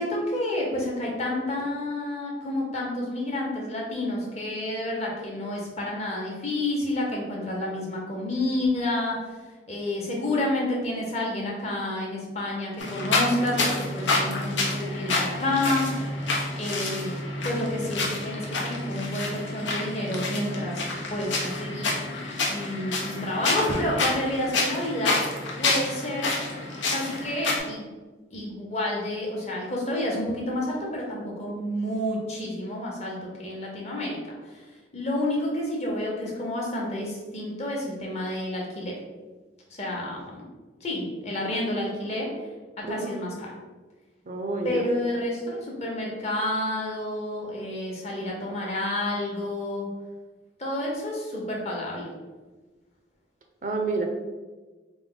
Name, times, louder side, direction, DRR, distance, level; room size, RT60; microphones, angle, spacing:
voice 1, 0.0-9.4 9.7-16.1 16.6-17.2 17.4-20.8 21.1-22.0 22.5-25.2 25.6-26.3 26.9-27.8 28.3-34.2 34.4-34.7 34.9-39.0 39.7-40.4 40.8-42.3 42.8-43.5 44.6-49.9 50.6-52.1, left 1 dB, 35° left, -2 dB, 0.9 m, -29 dB
sound 1, 12.8-27.6, left 2 dB, 85° left, 0.8 m, -28 dB
voice 2, 42.8-43.2 44.3-44.8 53.6-54.0, right 3 dB, 45° right, 3 dB, 0.4 m, -29 dB
4.3 x 2.1 x 3.8 m, 1.3 s
head